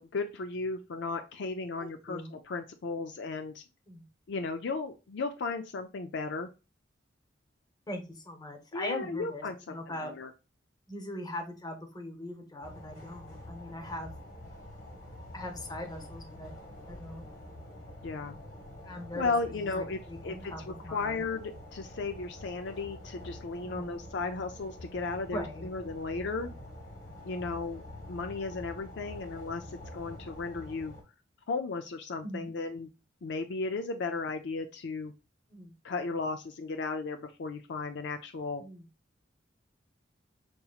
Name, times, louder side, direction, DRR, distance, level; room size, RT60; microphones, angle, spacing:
voice 1, 0.0-3.6 4.3-6.5 8.7-10.3 18.0-18.4 19.1-26.5 27.2-27.8 28.1-30.9 31.5-32.9 33.2-35.1 35.8-38.6, left 3 dB, 65° left, 7 dB, 0.4 m, -35 dB
voice 2, 1.8-2.3 3.9-4.0 7.9-10.1 10.9-14.1 15.3-16.5 16.9-17.3 18.9-21.3 23.6-24.0 25.3-25.6 32.2-32.5 35.5-35.7 38.6-38.9, left 1 dB, 20° left, 4 dB, 0.9 m, -41 dB
sound 1, 12.6-31.0, left 1 dB, 50° left, 1.5 m, -46 dB
5.3 x 2.9 x 2.3 m, 0.30 s
head